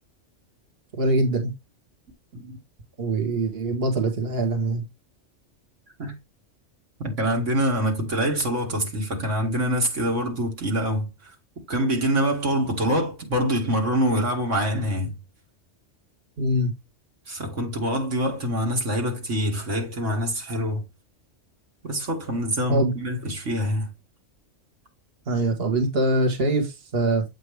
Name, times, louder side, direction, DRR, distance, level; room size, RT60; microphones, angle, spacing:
voice 1, 1.0-1.5 3.0-4.8 16.4-16.7 22.7-22.9 25.3-27.2, right 2 dB, 55° right, 1.7 m, -23 dB
voice 2, 7.0-11.3 11.7-15.1 17.3-20.8 21.8-23.9, equal, 80° right, 2.6 m, -25 dB
8.1 x 5.3 x 3.4 m
omnidirectional pair, 1.3 m